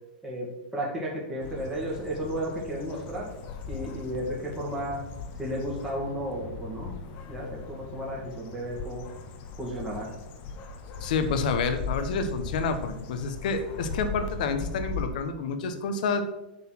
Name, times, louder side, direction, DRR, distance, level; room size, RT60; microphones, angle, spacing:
voice 1, 0.7-3.3 3.7-5.0 5.4-6.9 7.3-9.1 9.6-10.1, equal, 10° right, -5 dB, 2.1 m, -33 dB
sound 1, 1.4-15.1, left 5 dB, 40° left, 1.0 m, -38 dB
voice 2, 11.0-16.2, left 4 dB, 65° left, 8 dB, 1.1 m, -29 dB
7.5 x 4.1 x 6.0 m, 0.96 s
hypercardioid pair, 130°, 5 cm